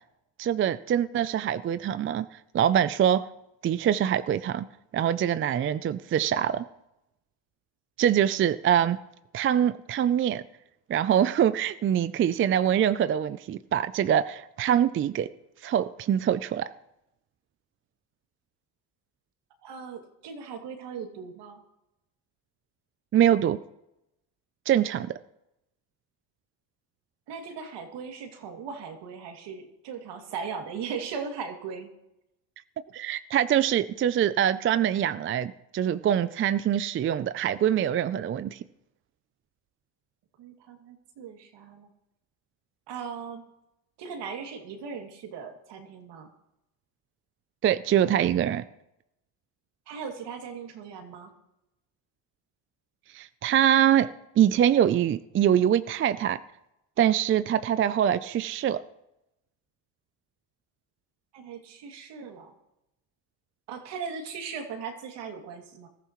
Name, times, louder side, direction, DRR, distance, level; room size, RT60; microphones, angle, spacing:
voice 1, 0.4-2.3 2.5-3.3 3.6-4.7 4.9-6.7 8.0-9.0 9.3-10.4 10.9-15.3 15.6-16.7 23.1-23.6 24.7-25.1 32.9-38.6 47.6-48.6 53.1-54.1 54.4-56.4 57.0-58.8, right 10 dB, 30° right, 14 dB, 0.4 m, -24 dB
voice 2, 19.6-21.6 27.3-31.9 40.4-41.9 42.9-43.4 44.0-46.3 49.9-51.3 61.3-62.5 63.7-65.9, right 6 dB, 65° right, 3 dB, 2.6 m, -38 dB
20.5 x 14.0 x 3.1 m, 0.87 s
cardioid pair, 105°, 43 cm